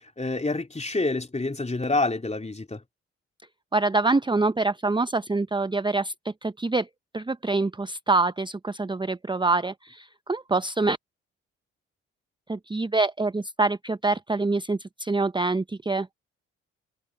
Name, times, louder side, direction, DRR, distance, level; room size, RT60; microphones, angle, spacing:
voice 1, 0.0-2.8, left 2 dB, 20° left, 3.0 m, -27 dB
voice 2, 3.7-6.9 7.1-11.0 12.5-16.1, right 3 dB, 15° right, 0.9 m, -25 dB
figure-of-eight pair, 40°, 36 cm